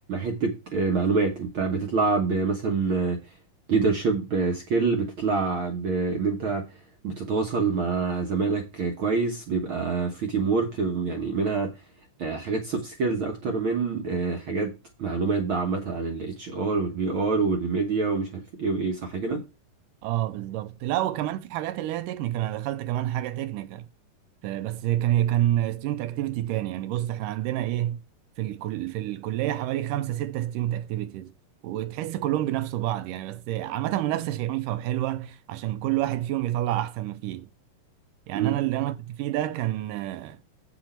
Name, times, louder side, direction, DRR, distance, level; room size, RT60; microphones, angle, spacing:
voice 1, 0.1-3.2 3.7-11.7 12.2-14.7 15.0-19.4 38.3-38.5, right 4 dB, 65° right, 1.3 m, -26 dB
voice 2, 20.0-23.9 24.4-28.0 28.4-31.3 31.6-37.5 38.3-40.4, right 13 dB, 80° right, 2.2 m, -28 dB
8.2 x 6.2 x 4.3 m
omnidirectional pair, 3.9 m